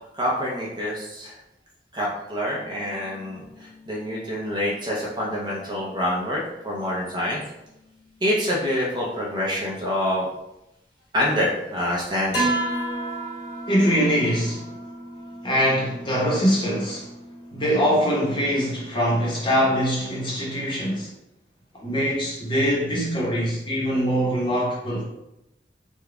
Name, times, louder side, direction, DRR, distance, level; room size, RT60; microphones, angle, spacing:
voice 1, 0.2-1.3 1.9-3.4 3.9-7.4 8.2-10.3 11.1-12.5, left 1 dB, 25° right, 0.7 m, -26 dB
sound 1, 2.5-9.4 10.0-10.1 12.3-20.3, right 1 dB, 85° left, 1.1 m, -36 dB
voice 2, 13.7-14.7 15.4-17.1 17.5-21.1 21.8-25.0, equal, 25° left, 0.9 m, -23 dB
3.9 x 2.3 x 3.3 m
head